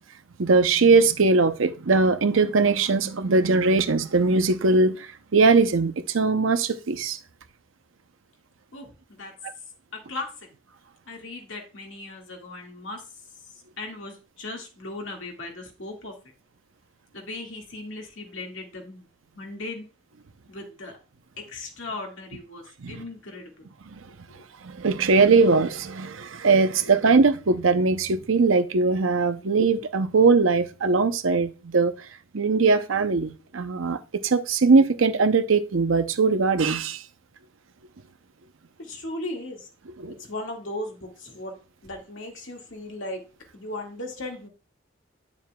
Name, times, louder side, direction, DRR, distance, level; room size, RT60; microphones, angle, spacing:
voice 1, 0.4-7.2 9.4-9.5 22.8-23.0 24.6-31.9 32.3-37.0 40.0-40.1, right 4 dB, 80° right, 0.7 m, -21 dB
voice 2, 9.9-10.3 11.1-13.0 13.8-16.2 17.1-19.1 19.4-19.9 20.5-21.0 21.4-23.7 24.3-24.4 26.8-26.9 29.4-29.5 38.8-39.6 40.2-41.5 41.8-43.2 43.5-44.5, left 2 dB, 70° left, 1.9 m, -37 dB
9.3 x 7.1 x 2.3 m
head